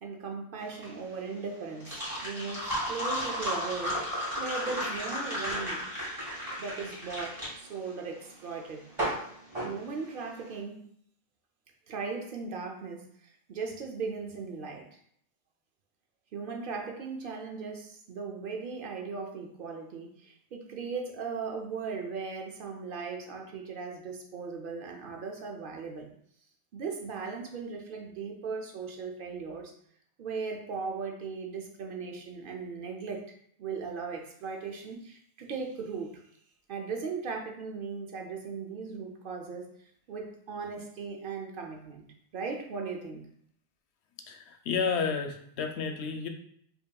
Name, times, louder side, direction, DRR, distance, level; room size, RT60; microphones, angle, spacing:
voice 1, 0.0-4.0 4.4-5.8 6.6-8.9 9.6-10.9 11.9-15.0 16.3-26.1 26.7-29.7 30.2-33.2 33.6-36.2 36.7-39.7 40.1-42.1 42.3-43.3, right 5 dB, 60° right, 2 dB, 0.7 m, -38 dB
sound 1, 0.6-10.5, equal, 30° right, 1.7 m, -34 dB
voice 2, 44.3-46.3, left 5 dB, 85° left, 6 dB, 0.8 m, -31 dB
5.2 x 2.8 x 2.2 m, 0.66 s
omnidirectional pair, 1.1 m